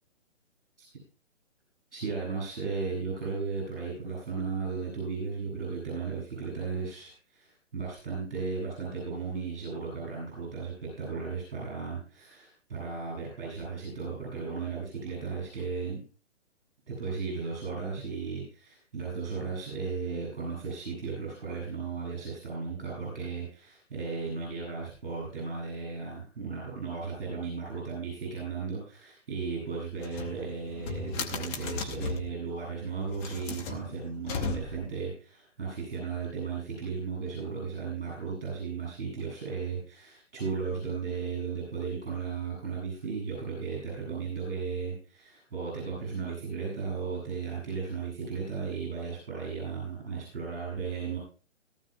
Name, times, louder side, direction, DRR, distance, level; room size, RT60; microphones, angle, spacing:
voice 1, 1.9-16.0 16.9-51.2, right 5 dB, 50° right, -5 dB, 7.8 m, -35 dB
sound 1, 30.0-32.4 33.0-35.0, left 5 dB, 15° left, 0.9 m, -36 dB
18.0 x 14.0 x 2.3 m, 0.37 s
figure-of-eight pair, 135°, 36 cm